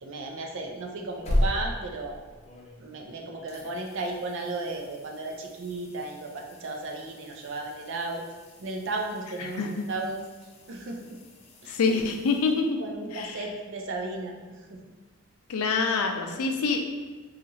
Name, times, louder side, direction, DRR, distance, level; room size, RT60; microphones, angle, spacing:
voice 1, 0.0-2.2 2.8-8.2 8.6-10.2 10.7-11.2 11.6-11.8 12.8-14.8, right 2 dB, 60° right, 2 dB, 0.4 m, -34 dB
sound 1, 0.9-3.1 3.5-13.1 15.8-15.9, left 1 dB, 30° left, 0.4 m, -37 dB
voice 2, 9.4-9.8 11.7-12.8 13.1-13.4 15.5-16.9, left 4 dB, 90° left, 4 dB, 0.4 m, -26 dB
2.8 x 2.4 x 4.0 m, 1.3 s
head